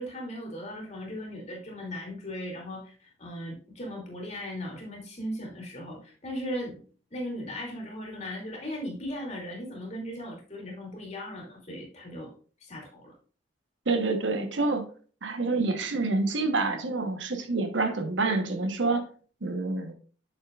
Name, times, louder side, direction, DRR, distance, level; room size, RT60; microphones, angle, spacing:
voice 1, 0.0-2.9 3.2-6.8 7.1-12.3 12.6-13.1, equal, 40° left, -1 dB, 2.6 m, -37 dB
voice 2, 13.9-14.8 15.2-19.0 19.4-19.9, right 3 dB, 80° right, 7 dB, 1.1 m, -27 dB
8.1 x 6.6 x 2.4 m, 0.39 s
head